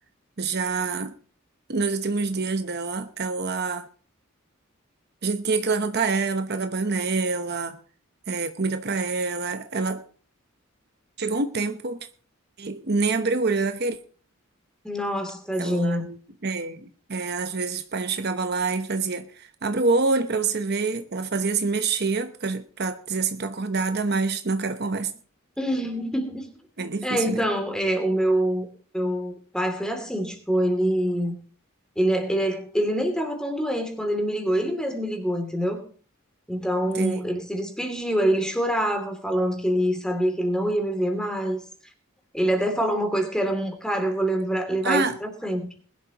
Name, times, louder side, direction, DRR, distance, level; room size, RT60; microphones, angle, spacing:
voice 1, 0.4-1.1 1.7-3.9 5.2-7.8 8.3-10.0 11.2-12.0 12.6-14.0 15.6-16.2 16.4-25.1 26.8-27.5 36.9-37.3 44.8-45.2, right 4 dB, 50° right, 0.9 m, -26 dB
voice 2, 14.8-16.1 25.6-26.5 27.0-28.7 28.9-31.4 32.0-35.8 36.5-41.6 42.3-45.7, equal, 5° left, 2.8 m, -25 dB
21.0 x 11.5 x 3.0 m
head